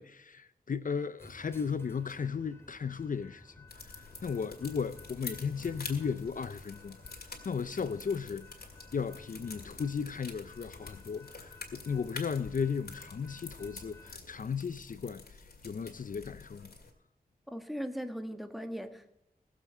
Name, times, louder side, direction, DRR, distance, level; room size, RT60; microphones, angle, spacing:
voice 1, 0.0-16.7, left 6 dB, 55° left, 0.5 m, -36 dB
sound 1, 1.2-14.2, left 2 dB, 15° left, 2.2 m, -55 dB
sound 2, 3.7-16.9, left 4 dB, 80° left, 2.2 m, -48 dB
voice 2, 17.5-19.1, equal, ahead, 1.4 m, -39 dB
20.0 x 7.3 x 4.3 m
wide cardioid pair, 75°, 16 cm